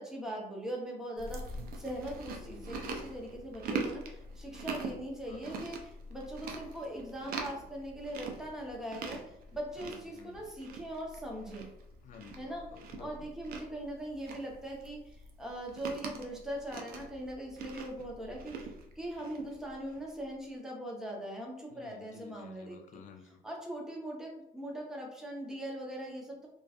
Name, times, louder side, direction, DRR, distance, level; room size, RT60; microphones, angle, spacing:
voice 1, 0.0-5.8 6.1-11.7 12.4-12.7 13.0-22.8 23.4-26.5, right 1 dB, 5° right, -2 dB, 0.6 m, -41 dB
Chewing mastication, 1.2-20.1, right 4 dB, 60° right, 0.5 m, -43 dB
voice 2, 2.4-3.1 5.3-5.7 9.8-10.5 12.0-13.3 21.7-23.4, left 6 dB, 50° left, 4 dB, 0.4 m, -53 dB
2.6 x 2.2 x 2.3 m, 0.79 s
cardioid pair, 110°, 17 cm